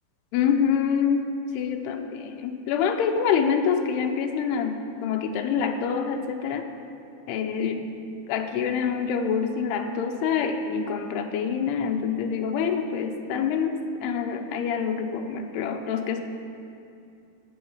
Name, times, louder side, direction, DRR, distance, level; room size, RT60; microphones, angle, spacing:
voice 1, 0.3-1.3 1.5-4.8 5.0-6.7 7.3-7.8 8.3-16.2, left 7 dB, 85° left, 5 dB, 2.7 m, -26 dB
13.0 x 5.5 x 8.7 m, 2.6 s
omnidirectional pair, 4.8 m